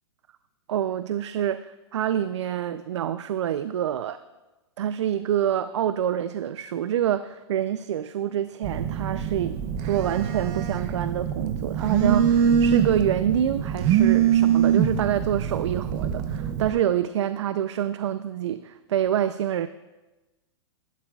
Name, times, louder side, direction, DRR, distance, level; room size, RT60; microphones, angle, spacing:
voice 1, 0.7-4.2 4.8-19.7, right 10 dB, 85° right, 12 dB, 0.4 m, -26 dB
Telephone, 8.6-16.7, right 8 dB, 20° right, 0.4 m, -24 dB
16.5 x 11.5 x 2.3 m, 1.1 s
supercardioid pair, 175°, 15 cm